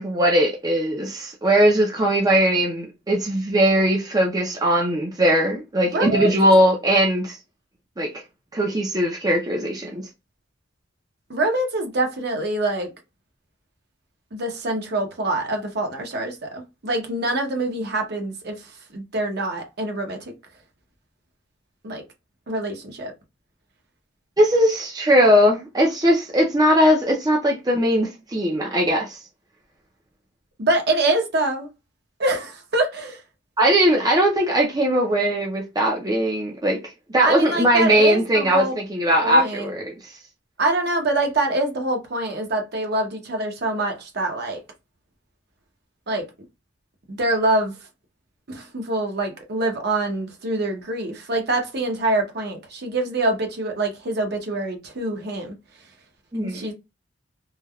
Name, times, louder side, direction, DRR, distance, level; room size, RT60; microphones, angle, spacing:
voice 1, 0.0-7.4 8.0-8.1 8.5-10.0 24.4-29.2 33.6-36.8 37.1-40.1 56.3-56.7, equal, 20° right, 0.5 m, -19 dB
voice 2, 5.9-6.3 11.3-12.9 14.3-20.3 21.8-22.0 22.5-23.1 30.6-31.7 32.2-33.2 37.2-38.8 39.2-39.7 40.6-44.6 46.1-46.2 47.1-47.7 48.5-55.6 56.3-56.7, right 2 dB, 55° right, 0.8 m, -25 dB
3.2 x 2.2 x 2.3 m
head